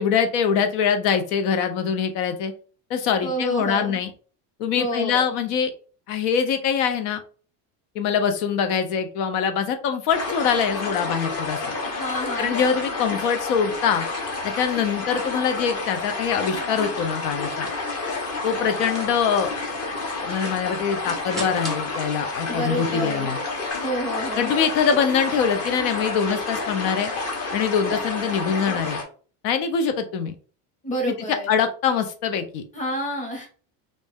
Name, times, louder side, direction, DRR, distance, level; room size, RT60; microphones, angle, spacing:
voice 1, 0.0-2.5 2.9-4.1 4.6-5.7 6.1-7.2 8.0-11.7 12.4-14.1 14.4-17.7 18.4-19.5 20.2-23.4 24.4-27.1 27.5-29.0 29.4-30.3 31.1-31.2 31.5-32.6, left 7 dB, 80° left, 8 dB, 0.7 m, -23 dB
voice 2, 3.2-4.0 4.8-5.4 12.0-12.8 22.5-23.3 23.8-24.6 30.8-31.6 32.7-33.5, equal, 15° left, 0 dB, 1.0 m, -29 dB
sound 1, 10.1-29.0, left 3 dB, 30° left, 0.9 m, -30 dB
sound 2, 18.6-23.7, right 2 dB, ahead, 0.3 m, -41 dB
3.1 x 2.6 x 3.5 m, 0.40 s
cardioid pair, 155°, 47 cm